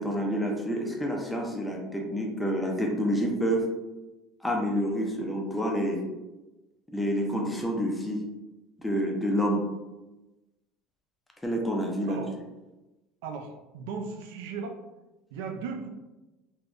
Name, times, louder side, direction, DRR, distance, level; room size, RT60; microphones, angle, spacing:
voice 1, 0.0-3.7 4.4-6.0 6.9-8.2 8.8-9.6 11.4-12.2, equal, 5° left, 0 dB, 0.4 m, -28 dB
voice 2, 13.2-14.8 15.3-15.9, right 5 dB, 85° right, 4 dB, 0.4 m, -36 dB
3.3 x 2.1 x 2.4 m, 1.1 s
cardioid pair, 165°, 0 cm